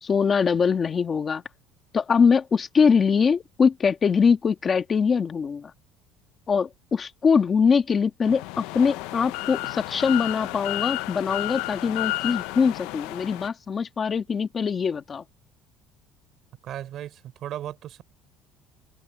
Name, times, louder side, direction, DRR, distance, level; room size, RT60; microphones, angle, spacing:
voice 1, 0.0-1.4 1.9-5.7 6.5-15.2, left 6 dB, 25° left, 1.5 m, -22 dB
sound 1, 8.2-13.5, left 20 dB, 80° left, 0.8 m, -32 dB
voice 2, 16.6-18.0, right 11 dB, 45° right, 4.1 m, -36 dB
open air
cardioid pair, 155°, 0 cm